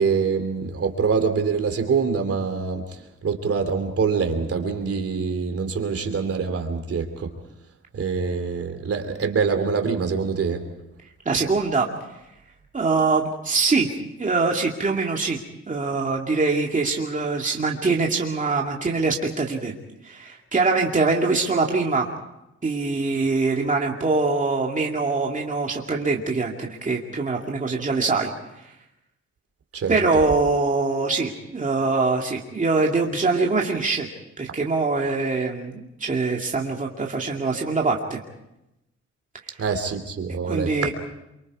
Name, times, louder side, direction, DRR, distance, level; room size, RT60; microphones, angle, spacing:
voice 1, 0.0-7.3 7.9-10.6 29.7-29.9 39.6-40.9, right 5 dB, 55° right, 6 dB, 3.0 m, -25 dB
voice 2, 11.3-11.9 12.7-13.9 14.2-15.4 15.7-19.7 20.0-22.1 22.6-28.3 29.9-34.1 34.4-38.2 40.4-40.9, right 3 dB, 25° right, -1 dB, 2.4 m, -23 dB
28.5 x 24.5 x 4.8 m, 0.88 s
cardioid pair, 120°, 29 cm